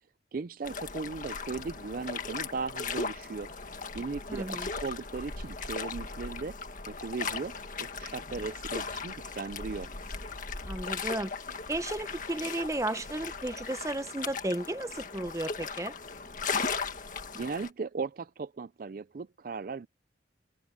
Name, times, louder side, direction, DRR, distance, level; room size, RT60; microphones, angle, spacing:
voice 1, 0.3-3.5 3.9-6.6 6.9-9.9 17.3-19.9, right 4 dB, 50° right, 0.4 m, -37 dB
sound 1, 0.6-17.7, left 4 dB, 45° left, 1.9 m, -37 dB
voice 2, 4.3-4.7 10.7-11.3 11.7-15.9, right 1 dB, 15° right, 0.7 m, -34 dB
head